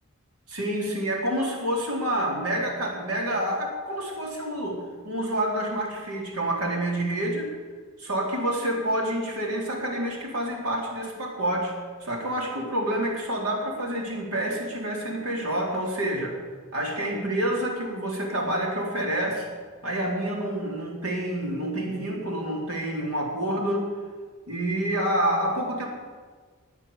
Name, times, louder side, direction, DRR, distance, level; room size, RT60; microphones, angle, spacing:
voice 1, 0.5-7.5 8.0-16.4 16.7-19.5 19.8-23.9 24.5-25.9, right 1 dB, 85° right, -1 dB, 3.9 m, -28 dB
21.0 x 7.3 x 7.0 m, 1.5 s
head